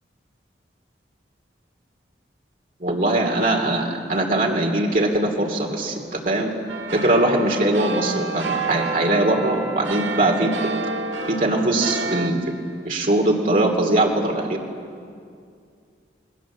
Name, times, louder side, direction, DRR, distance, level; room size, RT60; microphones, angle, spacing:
voice 1, 2.8-6.5 6.9-10.5 11.3-12.4 12.8-14.6, right 1 dB, 45° right, 1 dB, 2.8 m, -21 dB
sound 1, 6.7-12.3, right 3 dB, 90° right, 2.1 m, -29 dB
28.0 x 21.0 x 7.3 m, 2.3 s
head